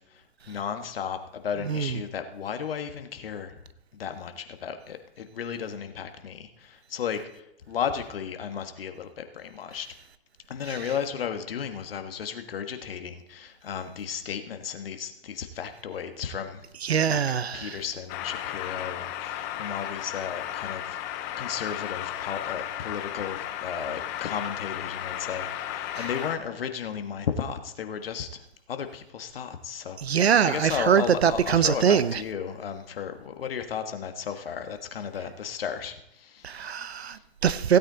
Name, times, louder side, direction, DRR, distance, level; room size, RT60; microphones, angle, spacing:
voice 1, 0.0-3.5 3.9-9.9 10.5-16.7 17.1-17.2 17.5-21.0 21.4-36.6 36.9-37.2, left 7 dB, 65° left, 7 dB, 1.5 m, -34 dB
voice 2, 16.8-17.8 25.9-26.1 30.0-32.2 36.4-37.8, right 8 dB, 85° right, 15 dB, 0.8 m, -23 dB
sound 1, 18.1-26.4, left 12 dB, 15° left, 0.5 m, -34 dB
16.0 x 8.7 x 4.0 m, 0.82 s
hypercardioid pair, 145°, 31 cm